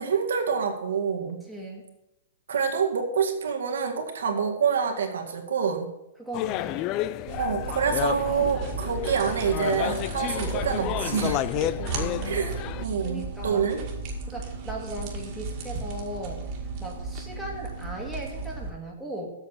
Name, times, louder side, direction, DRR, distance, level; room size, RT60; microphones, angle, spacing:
voice 1, 0.0-1.4 2.5-5.9 7.4-11.4 12.2-12.5 12.8-13.8, right 6 dB, 90° right, 2 dB, 1.9 m, -26 dB
voice 2, 1.5-1.8 6.2-6.8 11.8-12.4 13.0-13.6 14.3-19.3, right 1 dB, ahead, -2 dB, 1.9 m, -38 dB
sound 1, 6.3-12.8, left 13 dB, 30° left, 0.3 m, -31 dB
sound 2, 7.3-18.7, right 3 dB, 35° right, 1.9 m, -35 dB
8.0 x 6.6 x 8.3 m, 0.91 s
hypercardioid pair, 160°, 0 cm